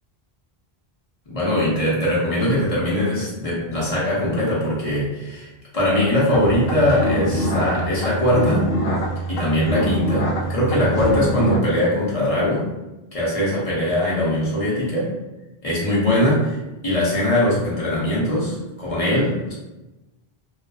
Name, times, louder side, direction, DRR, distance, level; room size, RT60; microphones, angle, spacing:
voice 1, 1.3-5.5 5.7-8.7 9.3-12.7 13.1-15.1 15.6-16.6 16.8-19.5, left 1 dB, 40° left, -7 dB, 0.8 m, -21 dB
sound 1, 6.3-11.6, equal, 75° left, 0.8 m, -24 dB
2.5 x 2.3 x 2.3 m, 1.0 s
omnidirectional pair, 1.0 m